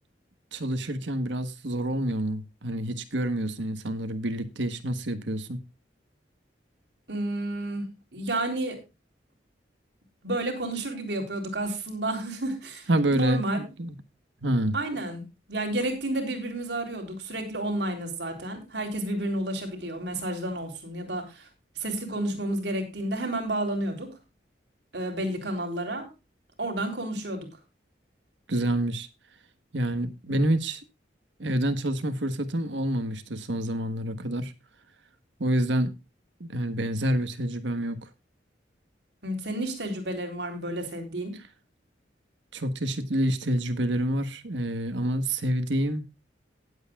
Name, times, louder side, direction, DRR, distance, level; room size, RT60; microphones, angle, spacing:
voice 1, 0.5-5.6 12.9-14.0 14.4-14.8 28.5-29.1 29.7-30.8 31.4-34.5 35.4-35.9 36.4-38.0 42.5-46.1, right 1 dB, 90° right, 1.4 m, -27 dB
voice 2, 7.1-7.9 8.1-8.8 10.2-13.7 14.7-15.2 15.5-21.5 21.8-24.1 24.9-26.1 26.6-27.5 39.2-41.3, right 1 dB, 70° right, 3.7 m, -31 dB
19.0 x 8.1 x 2.4 m
head